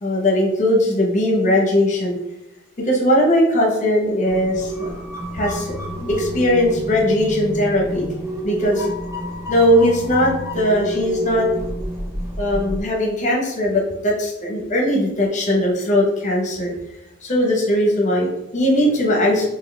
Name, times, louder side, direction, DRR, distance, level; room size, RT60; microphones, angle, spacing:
voice 1, 0.0-2.2 2.8-4.9 5.3-5.8 6.1-8.1 8.4-8.9 9.5-11.5 12.4-16.7 17.2-19.5, left 1 dB, 35° left, -2 dB, 1.2 m, -19 dB
sound 1, 4.2-12.8, right 1 dB, 15° right, 0.7 m, -29 dB
4.4 x 3.2 x 3.4 m, 0.89 s
head